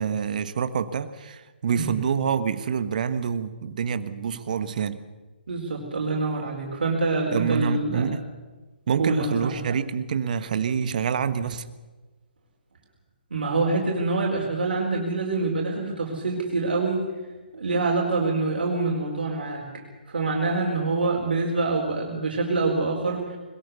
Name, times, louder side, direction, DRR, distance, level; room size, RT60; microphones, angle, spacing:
voice 1, 0.0-5.0 7.3-8.2 8.9-11.7, right 7 dB, 50° right, 12 dB, 1.3 m, -26 dB
voice 2, 5.5-8.1 9.0-9.5 13.3-17.0 17.5-19.7 20.1-23.4, right 3 dB, 65° right, -1 dB, 4.7 m, -25 dB
21.5 x 20.5 x 7.0 m, 1.3 s
figure-of-eight pair, 135°, 6 cm